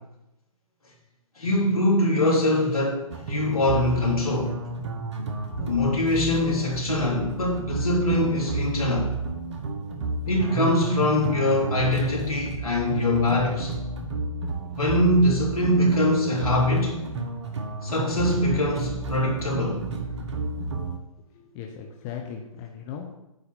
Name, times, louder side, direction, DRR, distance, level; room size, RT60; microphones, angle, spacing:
voice 1, 1.4-4.6 5.6-9.1 10.3-13.7 14.7-17.0 17.8-19.8, left 1 dB, 80° left, -3 dB, 3.6 m, -23 dB
sound 1, 3.1-21.0, right 2 dB, 50° right, 1.4 m, -31 dB
voice 2, 21.3-23.1, left 7 dB, 25° left, 2 dB, 0.9 m, -38 dB
9.6 x 4.2 x 6.9 m, 0.93 s
figure-of-eight pair, 135°, 18 cm